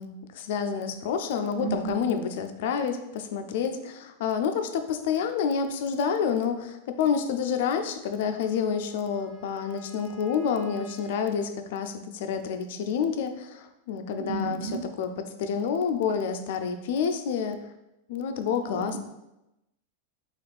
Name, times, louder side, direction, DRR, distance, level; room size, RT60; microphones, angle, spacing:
voice 1, 0.0-17.6 18.1-19.0, left 6 dB, 65° left, 8 dB, 0.3 m, -28 dB
voice 2, 1.6-2.1 14.2-14.9 18.6-19.0, right 5 dB, 85° right, 1 dB, 0.4 m, -33 dB
Wind instrument woodwind instrument, 8.3-11.5, right 5 dB, 15° right, 0.7 m, -51 dB
4.0 x 2.4 x 3.3 m, 0.94 s
supercardioid pair, 150°, 0 cm